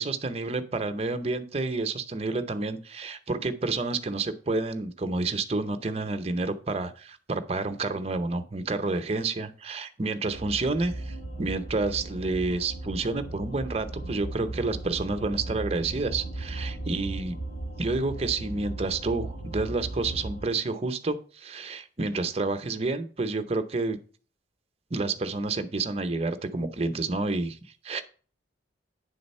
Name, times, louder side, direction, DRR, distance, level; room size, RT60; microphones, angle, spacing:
voice 1, 0.0-17.4 17.8-24.0 24.9-27.6 27.8-28.0, right 3 dB, 30° right, 8 dB, 0.7 m, -29 dB
sound 1, 10.2-20.5, right 2 dB, 65° left, 3.6 m, -37 dB
9.6 x 3.8 x 5.4 m, 0.41 s
head